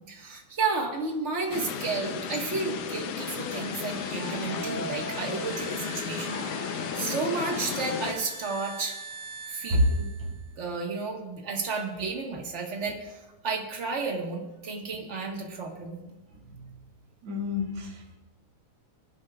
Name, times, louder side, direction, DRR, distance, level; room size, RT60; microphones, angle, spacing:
voice 1, 0.1-6.5 6.9-9.0 9.5-10.1 10.6-16.0, right 4 dB, 35° right, 1.2 m, -32 dB
sound 1, 1.5-8.1, left 7 dB, 80° left, 2.3 m, -34 dB
sound 2, 2.9-10.6, right 4 dB, 75° right, 0.7 m, -42 dB
voice 2, 9.7-10.4 16.0-16.1 16.5-16.7 17.2-18.2, left 1 dB, 50° right, 3.1 m, -28 dB
24.0 x 10.5 x 2.4 m
omnidirectional pair, 3.5 m